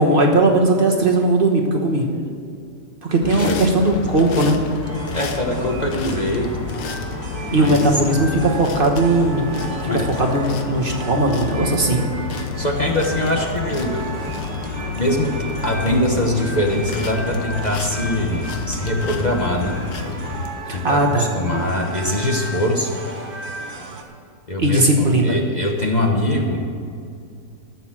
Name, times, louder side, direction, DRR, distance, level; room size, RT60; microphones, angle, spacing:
voice 1, 0.0-2.1 3.0-4.6 7.5-9.5 10.0-12.0 20.7-21.3 24.6-25.4, right 2 dB, 35° right, 1 dB, 1.2 m, -18 dB
sound 1, 3.2-20.5, left 4 dB, 75° left, 1.6 m, -30 dB
voice 2, 3.3-3.8 5.1-6.5 7.5-7.9 9.9-10.1 12.6-14.0 14.9-19.8 20.7-22.9 24.5-26.6, left 1 dB, 30° left, 1 dB, 0.9 m, -23 dB
sound 2, 4.8-24.0, right 2 dB, 60° right, 1.9 m, -35 dB
14.0 x 7.1 x 7.5 m, 2.4 s
omnidirectional pair, 2.0 m